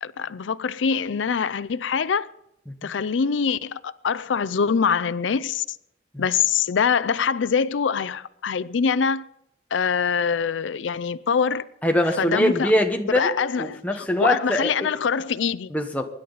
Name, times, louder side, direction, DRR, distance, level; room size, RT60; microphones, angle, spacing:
voice 1, 0.0-2.3 2.8-5.6 6.2-9.2 9.7-11.7 12.2-12.7 13.1-15.7, left 6 dB, 85° left, 0.5 m, -24 dB
voice 2, 11.8-14.9 15.7-16.0, left 1 dB, 10° left, 1.1 m, -23 dB
24.5 x 11.0 x 4.0 m
head